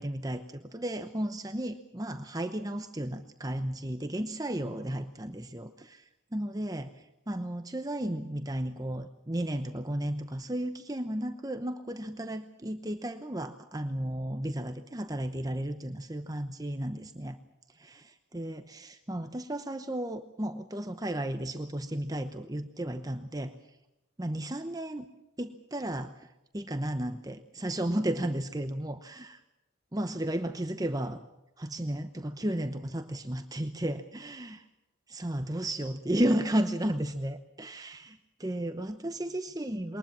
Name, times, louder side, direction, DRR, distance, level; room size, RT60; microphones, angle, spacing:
voice 1, 0.0-17.4 17.7-23.5 24.2-25.1 25.4-29.4 29.9-31.2 31.6-34.6 35.1-40.0, right 1 dB, 20° right, 8 dB, 0.9 m, -34 dB
22.0 x 20.0 x 7.4 m, 0.93 s
head